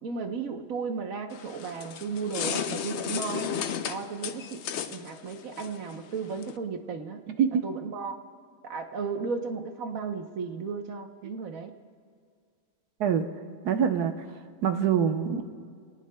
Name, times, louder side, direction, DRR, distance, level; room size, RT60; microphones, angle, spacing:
voice 1, 0.0-7.2 7.6-8.2 8.6-11.7, right 5 dB, 60° right, 5 dB, 1.3 m, -35 dB
sound 1, 1.3-6.6, left 8 dB, 65° left, 0.7 m, -34 dB
voice 2, 13.6-14.1 14.6-15.5, right 8 dB, 80° right, 6 dB, 1.5 m, -24 dB
24.0 x 19.0 x 2.3 m, 2.2 s
omnidirectional pair, 1.7 m